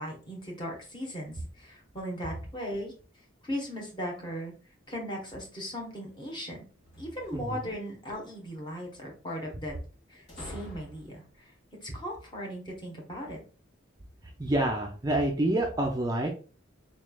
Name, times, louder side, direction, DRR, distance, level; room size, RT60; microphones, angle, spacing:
voice 1, 0.0-2.9 3.4-4.5 4.9-6.6 7.0-9.7 10.1-11.5 11.8-13.4, equal, 25° left, -1 dB, 1.0 m, -38 dB
sound 1, 6.8-7.8 10.3-11.3, equal, 60° left, 1.7 m, -46 dB
voice 2, 14.4-16.3, right 1 dB, 20° right, 1 dB, 0.4 m, -27 dB
4.1 x 3.1 x 2.2 m, 0.38 s
head